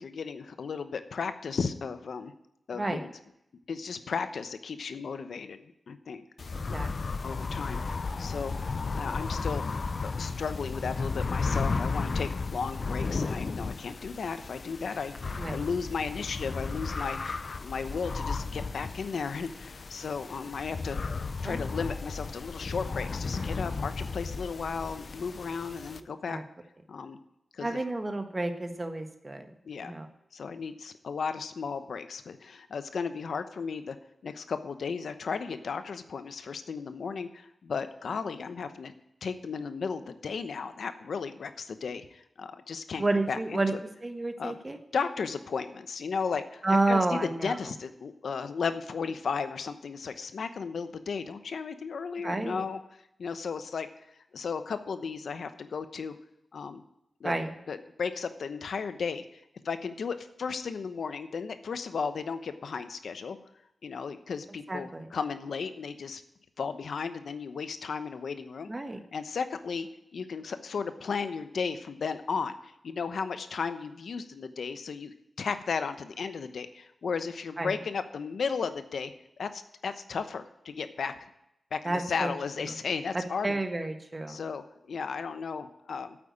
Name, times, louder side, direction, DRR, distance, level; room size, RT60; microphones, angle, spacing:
voice 1, 0.0-2.3 2.7-3.1 3.7-5.6 5.9-6.2 6.6-7.0 7.2-8.5 8.9-9.6 10.0-17.2 17.6-21.0 21.4-26.4 26.9-27.2 27.5-27.8 29.6-29.9 30.3-34.0 34.2-38.9 39.2-43.6 44.4-44.6 44.9-52.8 53.2-54.1 54.3-56.2 56.5-56.8 57.2-57.3 57.7-59.3 59.6-63.4 63.8-66.2 66.6-68.7 69.1-79.1 79.4-81.2 81.7-83.6 84.3-86.2, left 5 dB, 80° left, 10 dB, 0.9 m, -35 dB
voice 2, 2.7-3.0 6.7-6.9 15.4-15.6 21.4-21.6 26.3-26.4 27.6-29.5 29.8-30.1 43.0-43.7 44.0-44.8 46.6-47.6 52.2-52.6 57.2-57.5 64.7-65.1 68.7-69.0 77.6-77.8 81.8-82.3 83.1-84.4, right 2 dB, 30° right, 7 dB, 1.5 m, -30 dB
sound 1, 6.4-26.0, left 4 dB, 55° left, 0.6 m, -34 dB
8.9 x 8.4 x 8.6 m, 0.81 s
cardioid pair, 70°, 0 cm